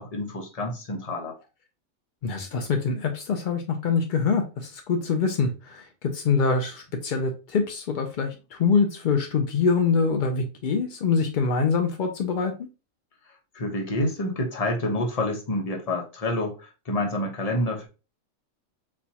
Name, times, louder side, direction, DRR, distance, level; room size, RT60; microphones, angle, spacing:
voice 1, 0.0-1.4 13.5-17.9, left 1 dB, 35° left, 0.7 m, -28 dB
voice 2, 2.2-12.5, left 5 dB, 80° left, 0.4 m, -24 dB
4.1 x 2.3 x 2.7 m
omnidirectional pair, 1.4 m